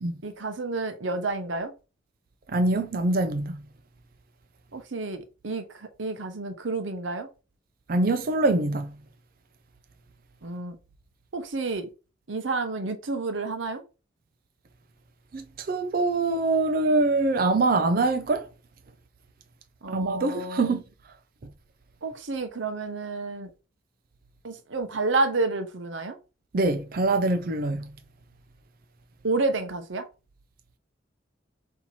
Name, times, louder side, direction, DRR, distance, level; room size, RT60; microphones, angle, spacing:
voice 1, 0.2-1.7 4.7-7.3 10.4-10.8 11.3-11.9 12.3-13.8 19.8-20.8 22.0-23.5 24.4-26.2 29.2-30.0, right 3 dB, 80° right, 0.8 m, -30 dB
voice 2, 2.5-3.6 7.9-8.9 15.3-18.4 19.9-20.8 26.5-27.9, right 2 dB, 50° right, 0.4 m, -24 dB
4.4 x 2.9 x 4.2 m
head